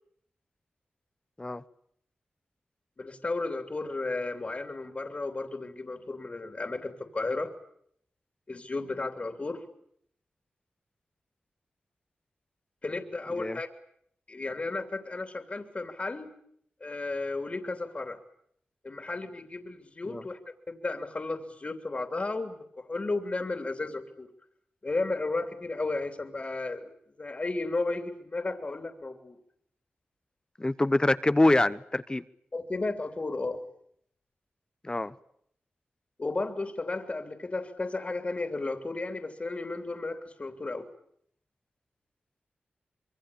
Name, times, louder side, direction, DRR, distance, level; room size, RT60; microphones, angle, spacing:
voice 1, 3.0-7.5 8.5-9.6 12.8-13.7 14.3-16.3 16.8-18.2 18.8-24.3 24.8-26.9 27.2-29.4 32.5-33.6 36.2-40.9, left 3 dB, 40° left, 3.1 m, -33 dB
voice 2, 13.3-13.6 20.1-20.2 30.6-32.2 34.8-35.1, left 2 dB, 25° left, 1.0 m, -25 dB
26.0 x 23.0 x 8.6 m
cardioid pair, 60°, 4 cm